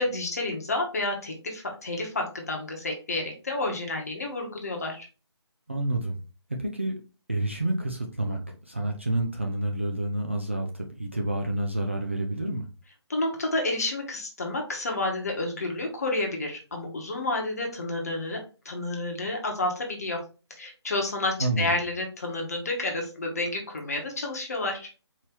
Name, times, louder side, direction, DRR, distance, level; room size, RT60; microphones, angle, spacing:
voice 1, 0.0-5.1 13.1-18.4 18.6-20.2 20.6-24.9, left 2 dB, 35° left, 1 dB, 1.0 m, -30 dB
voice 2, 5.7-6.2 6.6-7.0 7.3-8.4 8.7-12.6 21.4-21.8, right 1 dB, 25° right, 1 dB, 0.4 m, -29 dB
4.4 x 2.9 x 3.5 m, 0.33 s
hypercardioid pair, 175°, 15 cm